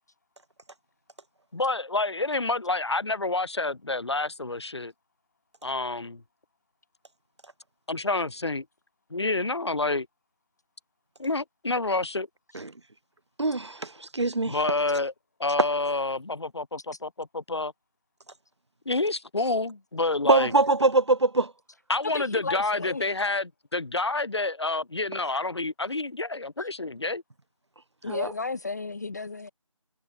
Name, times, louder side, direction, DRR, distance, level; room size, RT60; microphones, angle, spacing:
voice 1, 1.5-4.9 5.6-6.2 7.9-8.6 9.1-10.1 11.2-12.3 14.4-15.1 15.4-17.7 18.8-20.5 21.9-27.2, left 2 dB, 50° left, 3.3 m, -28 dB
voice 2, 13.4-14.6 20.3-21.5 28.1-28.3, right 2 dB, 55° right, 2.2 m, -23 dB
voice 3, 22.0-23.1 26.6-26.7 28.0-29.5, left 4 dB, 30° left, 1.0 m, -33 dB
figure-of-eight pair, 165°, 17 cm